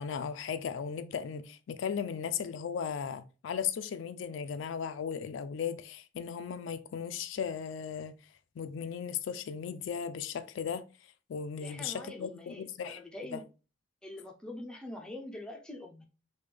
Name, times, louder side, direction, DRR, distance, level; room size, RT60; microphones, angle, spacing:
voice 1, 0.0-8.2 8.6-10.9 11.3-13.0 13.3-13.4, left 7 dB, 70° left, 0.3 m, -36 dB
voice 2, 11.6-13.4 14.0-16.0, left 1 dB, 5° left, 0.4 m, -44 dB
3.2 x 2.2 x 3.3 m
head